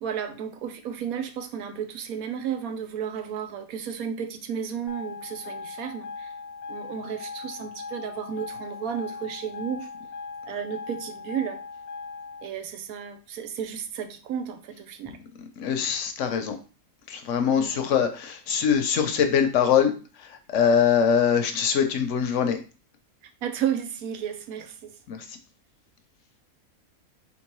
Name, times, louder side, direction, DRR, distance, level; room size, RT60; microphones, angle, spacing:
voice 1, 0.0-6.3 6.7-9.9 10.5-11.6 12.4-15.2 17.5-17.8 23.4-25.0, right 8 dB, 90° right, 8 dB, 1.1 m, -33 dB
sound 1, 4.9-12.5, left 4 dB, 85° left, 1.1 m, -39 dB
voice 2, 15.4-16.6 17.1-19.9 20.2-22.6 25.1-25.4, left 7 dB, 65° left, 6 dB, 0.9 m, -23 dB
4.1 x 3.7 x 3.0 m, 0.35 s
omnidirectional pair, 1.5 m